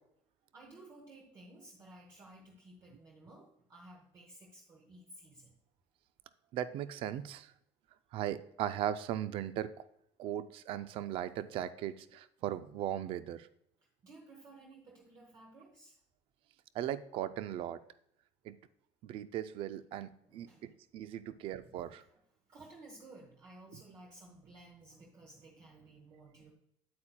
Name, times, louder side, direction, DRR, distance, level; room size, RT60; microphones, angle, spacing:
voice 1, 0.5-5.6 14.0-16.0 20.2-20.7 21.6-22.1 22.5-26.5, right 2 dB, 35° right, -1 dB, 1.0 m, -55 dB
voice 2, 6.5-7.5 8.1-9.7 10.2-13.5 16.7-17.8 18.4-18.6 19.0-22.0, right 11 dB, 50° right, 13 dB, 0.4 m, -38 dB
8.7 x 8.5 x 2.2 m, 0.73 s
cardioid pair, 160°, 12 cm